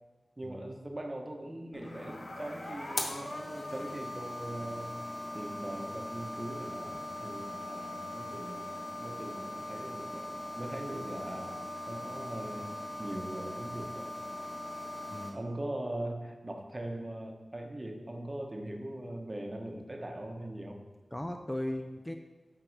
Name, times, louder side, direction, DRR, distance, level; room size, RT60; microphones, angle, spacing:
voice 1, 0.4-5.0 5.3-10.3 10.6-14.1 15.3-20.8, right 1 dB, 30° right, 4 dB, 1.0 m, -41 dB
sound 1, 1.7-15.3, left 1 dB, 60° left, 1.3 m, -40 dB
voice 2, 21.1-22.1, left 1 dB, 10° left, 5 dB, 0.5 m, -37 dB
7.8 x 4.7 x 6.5 m, 1.3 s
wide cardioid pair, 75°, 0 cm